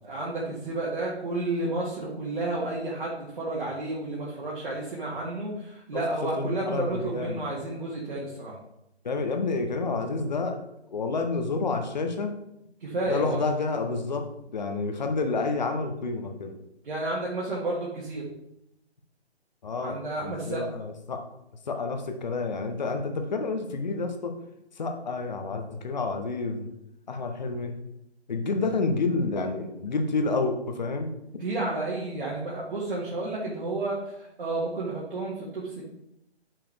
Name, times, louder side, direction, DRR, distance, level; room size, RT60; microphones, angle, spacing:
voice 1, 0.0-8.6 12.8-13.4 16.8-18.2 19.8-20.6 31.4-35.8, right 2 dB, 50° right, -5 dB, 1.8 m, -31 dB
voice 2, 6.4-7.4 9.0-10.6 10.9-12.3 13.1-14.2 14.5-16.6 19.6-21.2 21.7-24.3 24.8-26.7 27.1-27.8 28.3-31.1, left 3 dB, 40° left, 5 dB, 1.0 m, -29 dB
6.8 x 5.8 x 3.3 m, 0.83 s
figure-of-eight pair, 145°, 33 cm